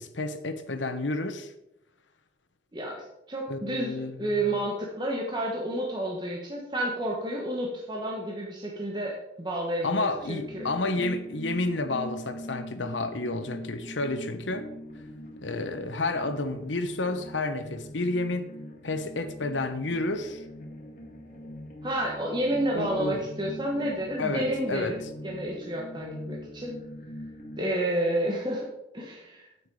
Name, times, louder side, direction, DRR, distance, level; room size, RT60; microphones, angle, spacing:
voice 1, 0.0-1.5 3.5-4.3 9.8-14.7 15.4-18.5 18.8-20.4 22.7-23.2 24.2-24.9, left 2 dB, 90° left, 1.1 m, -30 dB
voice 2, 2.7-10.7 21.8-26.7 27.6-28.7 28.9-29.5, right 1 dB, 25° right, 1.4 m, -30 dB
sound 1, 10.1-27.6, equal, 45° left, 2.0 m, -42 dB
9.1 x 8.6 x 4.8 m
head